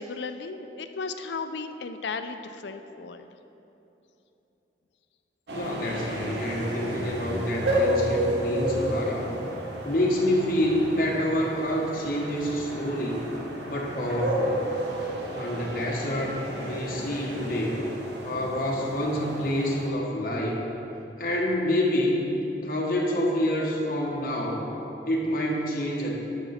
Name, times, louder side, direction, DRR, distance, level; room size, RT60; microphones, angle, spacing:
voice 1, 0.0-3.3, left 4 dB, 80° left, 9 dB, 0.5 m, -35 dB
voice 2, 5.5-9.3 9.8-13.3 13.7-14.6 15.3-17.9 18.2-20.6 21.2-22.2 22.6-24.7 25.0-26.1, equal, 50° left, -2 dB, 1.4 m, -27 dB
sound 1, 5.5-19.9, equal, 80° right, 1.1 m, -32 dB
11.0 x 6.8 x 4.3 m, 3.0 s
head